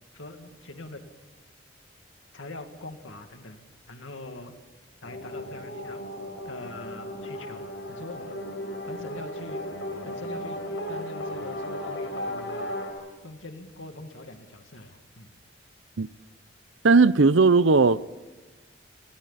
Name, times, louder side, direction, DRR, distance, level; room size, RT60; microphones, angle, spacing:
voice 1, 0.1-1.0 2.3-3.6 3.9-4.5 5.0-6.0 6.4-7.6 7.9-8.4 8.9-9.6 10.1-10.6 10.9-12.8 13.2-15.3, left 2 dB, 85° left, 2.4 m, -42 dB
sound 1, 5.0-12.9, left 1 dB, 70° left, 5.9 m, -35 dB
voice 2, 16.8-18.2, right 4 dB, 80° right, 0.7 m, -18 dB
29.5 x 21.5 x 4.2 m
head